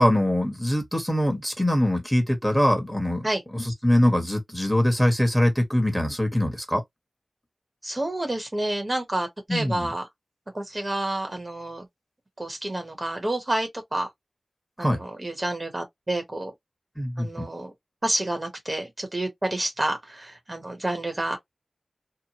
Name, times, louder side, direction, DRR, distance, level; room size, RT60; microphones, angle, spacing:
voice 1, 0.0-3.3 3.5-6.8 9.5-9.9 14.8-15.0 17.0-17.5, left 1 dB, 5° left, 1.2 m, -23 dB
voice 2, 7.8-10.1 10.5-11.9 12.4-14.1 14.8-16.5 17.2-17.7 18.0-21.4, right 1 dB, 35° right, 0.9 m, -29 dB
2.9 x 2.1 x 2.9 m
wide cardioid pair, 60°, 0 cm